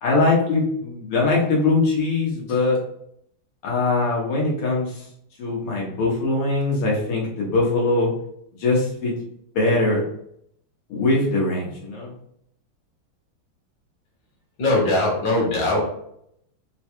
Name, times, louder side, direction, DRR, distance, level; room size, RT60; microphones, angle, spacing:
voice 1, 0.0-2.8 3.6-5.1 5.4-8.1 8.6-9.1 9.6-10.0 10.9-12.1, left 3 dB, 80° left, -3 dB, 1.9 m, -21 dB
voice 2, 14.6-15.9, left 2 dB, 60° left, -3 dB, 1.7 m, -21 dB
4.4 x 2.2 x 2.9 m, 0.71 s
omnidirectional pair, 2.4 m